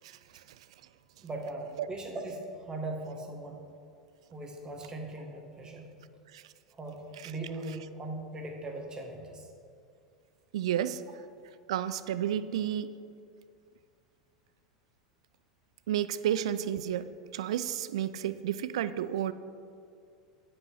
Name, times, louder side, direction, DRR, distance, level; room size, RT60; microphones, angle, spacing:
voice 1, 0.0-0.4 1.8-1.9 6.3-6.4 7.2-7.3 10.5-11.0 11.7-12.9 15.9-19.3, right 10 dB, 70° right, 14 dB, 0.4 m, -31 dB
voice 2, 1.2-3.6 4.3-5.9 6.8-9.5 16.2-16.3, right 2 dB, 20° right, 2 dB, 1.6 m, -39 dB
9.5 x 5.5 x 5.7 m, 2.4 s
figure-of-eight pair, 85°, 3 cm